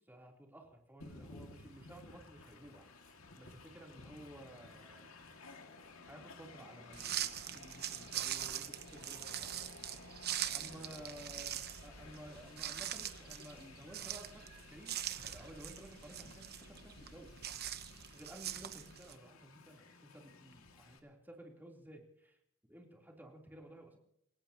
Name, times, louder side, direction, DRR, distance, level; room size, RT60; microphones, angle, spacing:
voice 1, 0.1-2.9 3.3-5.2 6.1-9.8 10.5-17.3 18.1-22.4 22.7-24.0, right 1 dB, 10° right, 0 dB, 3.4 m, -54 dB
Train, 1.0-21.0, left 3 dB, 85° left, 2.2 m, -56 dB
sound 1, 6.9-19.1, right 11 dB, 50° right, 1.0 m, -43 dB
28.0 x 17.0 x 2.9 m, 0.72 s
head